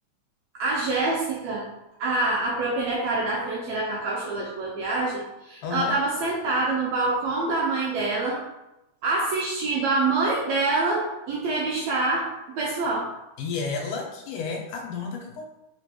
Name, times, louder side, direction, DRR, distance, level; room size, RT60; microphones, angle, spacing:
voice 1, 0.6-1.6 2.0-8.4 9.0-12.3 12.6-13.1, right 3 dB, 80° right, -4 dB, 1.5 m, -26 dB
voice 2, 5.6-6.0 13.4-15.4, left 5 dB, 90° left, 1 dB, 2.1 m, -31 dB
4.9 x 2.2 x 2.8 m, 0.92 s
omnidirectional pair, 3.6 m